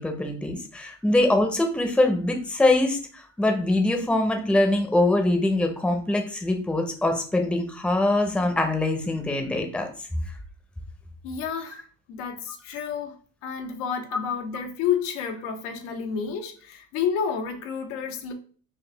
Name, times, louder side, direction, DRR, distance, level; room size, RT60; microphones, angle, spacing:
voice 1, 0.0-3.0 3.4-9.9, left 2 dB, 5° left, 4 dB, 0.7 m, -23 dB
voice 2, 11.2-13.1 13.4-18.3, left 7 dB, 85° left, 4 dB, 0.9 m, -30 dB
4.1 x 2.4 x 3.3 m, 0.41 s
supercardioid pair, 100°, 36 cm